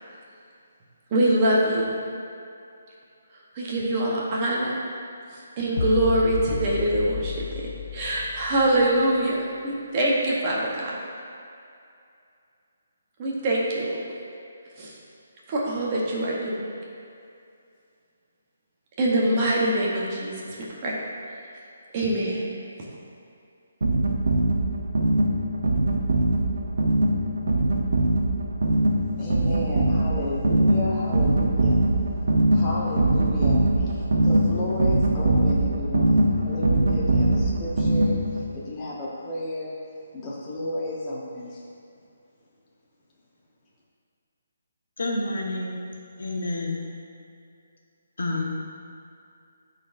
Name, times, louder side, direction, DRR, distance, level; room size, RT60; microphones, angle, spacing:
voice 1, 1.1-2.0 3.5-4.8 5.6-7.3 7.9-9.4 9.6-11.0 13.2-13.9 14.8-14.9 15.5-16.6 19.0-20.9 21.9-22.4, right 1 dB, 25° right, -4 dB, 1.0 m, -24 dB
sound 1, 5.8-9.2, left 6 dB, 60° left, 0.5 m, -32 dB
sound 2, 23.8-38.5, right 1 dB, 75° right, 0.8 m, -22 dB
voice 2, 29.2-31.8 32.5-39.8 40.1-41.6, left 1 dB, 15° left, -6 dB, 1.1 m, -32 dB
voice 3, 45.0-45.8 46.2-46.8 48.2-48.5, left 2 dB, 80° left, -2 dB, 1.3 m, -28 dB
12.0 x 4.1 x 2.6 m, 2.5 s
hypercardioid pair, 170°, 0 cm